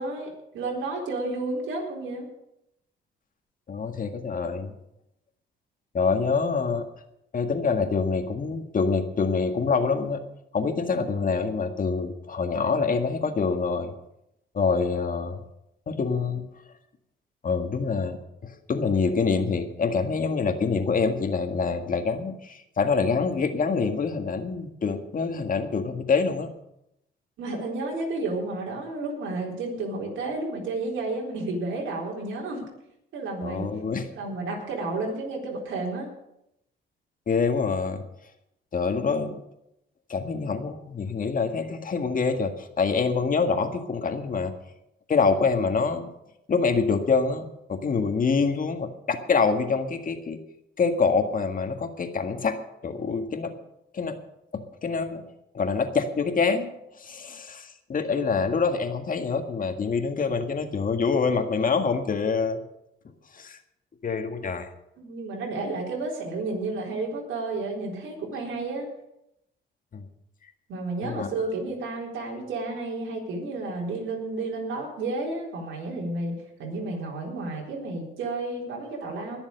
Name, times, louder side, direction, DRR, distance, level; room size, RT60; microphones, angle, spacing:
voice 1, 0.0-2.3 27.4-32.6 33.1-33.7 34.1-36.1 64.4-64.5 65.0-68.9 70.7-79.4, right 2 dB, 80° right, -2 dB, 4.1 m, -31 dB
voice 2, 3.7-4.7 5.9-6.9 7.3-10.2 10.5-13.9 14.5-15.4 15.9-16.4 17.4-18.2 18.4-26.5 33.4-34.1 37.3-38.0 38.7-39.4 40.1-44.5 45.1-46.1 46.5-50.4 50.8-52.6 52.8-53.5 53.9-54.2 54.5-55.2 55.5-56.7 57.0-62.6 63.3-63.6 64.0-64.7 69.9-70.0 71.0-71.3, left 5 dB, 45° left, 6 dB, 1.8 m, -26 dB
20.5 x 7.1 x 6.6 m, 0.82 s
cardioid pair, 90°, 20 cm